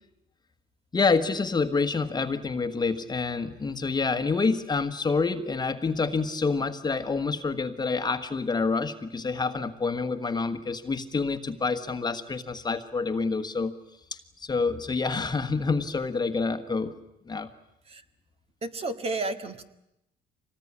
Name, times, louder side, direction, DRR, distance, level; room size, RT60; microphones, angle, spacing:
voice 1, 0.9-13.7 14.1-16.9 17.3-17.5, left 4 dB, 25° left, 9 dB, 1.5 m, -27 dB
voice 2, 18.6-19.6, right 2 dB, 35° right, 8 dB, 1.9 m, -32 dB
25.0 x 19.0 x 9.8 m, 0.85 s
cardioid pair, 110°, 17 cm